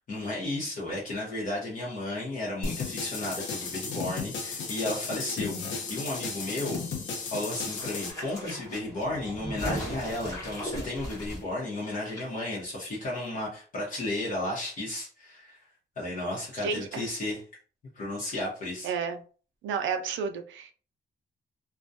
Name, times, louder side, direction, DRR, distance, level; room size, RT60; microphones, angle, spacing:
voice 1, 0.1-6.8 7.3-15.6 16.0-17.4 17.9-18.9, left 1 dB, 45° left, -5 dB, 0.8 m, -33 dB
sound 1, 2.6-8.1, left 4 dB, 90° left, 0.6 m, -34 dB
sound 2, 7.4-12.2 12.5-12.6, equal, 15° left, 1.0 m, -38 dB
voice 2, 16.6-17.1 18.8-19.2 19.6-20.7, right 6 dB, 90° right, 6 dB, 0.4 m, -31 dB
2.3 x 2.2 x 2.6 m, 0.40 s
wide cardioid pair, 175°, 19 cm